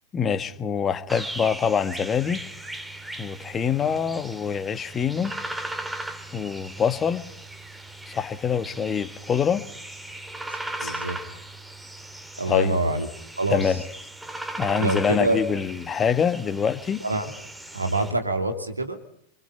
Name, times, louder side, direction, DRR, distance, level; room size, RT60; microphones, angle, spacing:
voice 1, 0.1-2.4 3.2-5.3 6.3-7.3 8.1-9.6 10.8-11.0 12.5-12.8 13.5-13.8 14.6-17.0, left 7 dB, 20° left, 12 dB, 1.6 m, -25 dB
sound 1, 1.1-18.1, right 1 dB, 5° right, 2.3 m, -38 dB
voice 2, 10.8-11.2 12.4-13.1 13.4-13.6 14.8-15.4 17.0-17.3 17.7-19.0, right 2 dB, 80° right, 5 dB, 2.8 m, -25 dB
27.5 x 24.5 x 5.6 m, 0.69 s
figure-of-eight pair, 90°, 0 cm